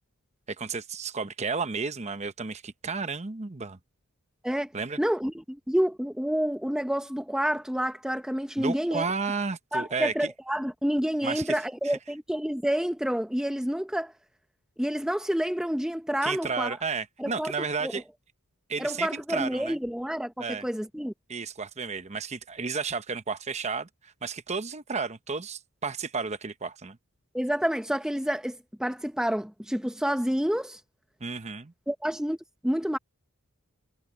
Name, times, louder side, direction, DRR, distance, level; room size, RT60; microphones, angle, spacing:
voice 1, 0.5-3.8 4.7-5.0 8.6-10.3 11.2-11.6 11.8-12.0 16.2-18.0 18.7-19.7 20.4-20.7 21.3-27.0 31.2-31.7, right 4 dB, 30° right, 0.9 m, -32 dB
voice 2, 5.0-9.1 9.7-14.1 14.8-16.8 17.2-17.5 17.8-17.9 18.8-21.1 27.3-30.8 31.9-32.4 32.6-33.0, equal, 5° right, 0.7 m, -28 dB
head